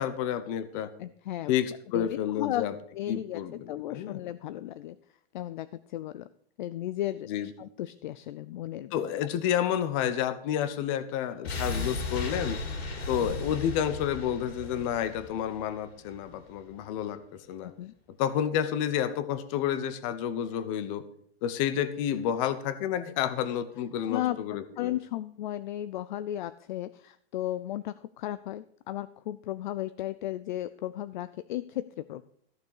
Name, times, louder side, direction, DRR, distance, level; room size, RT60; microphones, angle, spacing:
voice 1, 0.0-0.9 1.5-2.7 3.1-4.2 7.3-7.5 8.9-12.6 13.1-17.7 18.2-21.0 21.4-24.9, left 10 dB, 35° left, 13 dB, 1.0 m, -30 dB
voice 2, 1.0-1.5 1.9-2.6 2.9-5.0 5.3-6.3 6.6-8.9 13.2-13.3 17.6-17.9 24.1-32.2, left 13 dB, 50° left, 14 dB, 0.5 m, -35 dB
sound 1, 11.4-16.4 16.7-16.8, left 3 dB, 85° left, 5.2 m, -36 dB
14.5 x 6.7 x 6.6 m, 0.66 s
supercardioid pair, 160°, 31 cm